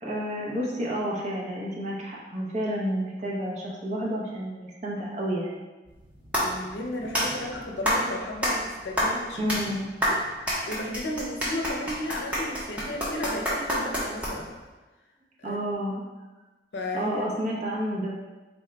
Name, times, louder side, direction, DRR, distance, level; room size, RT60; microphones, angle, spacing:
voice 1, 0.0-5.6 7.0-7.5 9.4-9.9 15.4-16.0 16.9-18.1, equal, 40° right, -4 dB, 0.7 m, -30 dB
sound 1, 5.9-14.6, equal, 5° right, 0.7 m, -29 dB
voice 2, 6.4-9.5 10.1-10.2 10.5-14.5 15.4-15.6 16.7-17.2, left 1 dB, 80° left, 1 dB, 0.5 m, -34 dB
3.4 x 2.2 x 3.8 m, 1.2 s
head